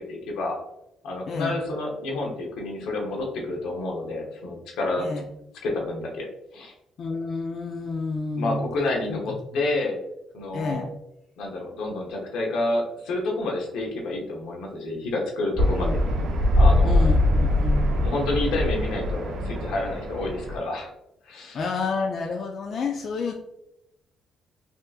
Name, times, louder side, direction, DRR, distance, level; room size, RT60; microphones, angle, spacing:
voice 1, 0.1-0.6 1.0-5.1 5.6-6.3 6.5-6.7 8.3-10.0 10.3-10.9 11.4-16.0 16.5-17.1 18.0-20.9 21.2-21.6, left 2 dB, 80° left, 0 dB, 0.8 m, -29 dB
voice 2, 7.0-8.7 9.1-9.4 10.5-10.9 15.8-15.9 16.4-16.5 16.8-17.9 21.5-23.3, left 4 dB, 50° left, 2 dB, 0.4 m, -29 dB
sound 1, 15.6-20.6, left 1 dB, 70° right, 0.5 m, -22 dB
3.5 x 2.8 x 2.3 m, 0.84 s
cardioid pair, 105°, 0 cm